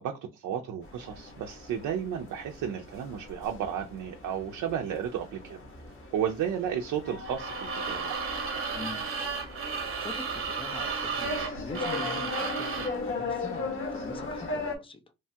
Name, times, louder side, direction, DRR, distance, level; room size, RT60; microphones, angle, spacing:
voice 1, 0.0-5.6 6.1-8.2, right 9 dB, 75° right, 0.5 m, -33 dB
sound 1, 0.8-14.8, left 3 dB, 45° left, 0.9 m, -38 dB
sound 2, 7.2-13.0, right 5 dB, 45° right, 0.8 m, -33 dB
voice 2, 8.7-9.1 9.7-15.0, left 3 dB, 20° left, 0.5 m, -43 dB
3.0 x 2.2 x 2.7 m
cardioid pair, 90°, 30 cm